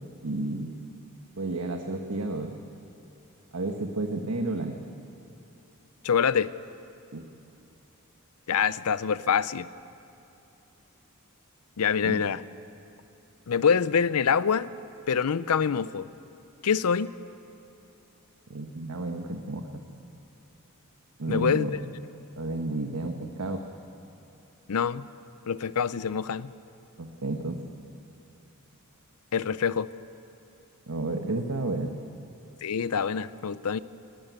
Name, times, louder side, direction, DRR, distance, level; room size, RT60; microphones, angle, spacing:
voice 1, 0.2-0.9 1.4-2.5 3.5-4.8 7.1-7.2 12.0-12.2 18.5-19.8 21.2-21.7 22.4-23.6 27.0-27.6 30.9-31.9, right 2 dB, 75° right, 4 dB, 1.2 m, -31 dB
voice 2, 6.0-6.5 8.5-9.7 11.8-12.4 13.5-14.7 15.1-16.1 16.6-17.1 21.3-21.7 24.7-25.1 25.5-26.5 29.3-29.9 32.6-33.8, left 6 dB, 80° left, 17 dB, 0.5 m, -25 dB
19.0 x 16.0 x 9.3 m, 2.9 s
head